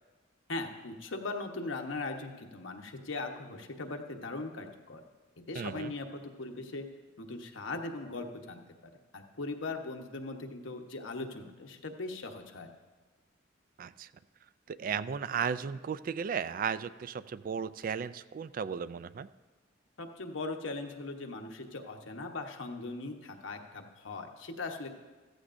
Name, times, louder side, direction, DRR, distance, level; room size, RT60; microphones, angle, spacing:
voice 1, 0.5-5.0 5.5-6.9 7.2-8.6 9.1-12.7 20.0-24.9, left 3 dB, 90° left, 3 dB, 1.1 m, -39 dB
voice 2, 5.5-5.9 13.8-14.1 14.7-19.3, right 7 dB, 45° right, 15 dB, 0.3 m, -35 dB
14.5 x 14.5 x 2.6 m, 1.3 s
head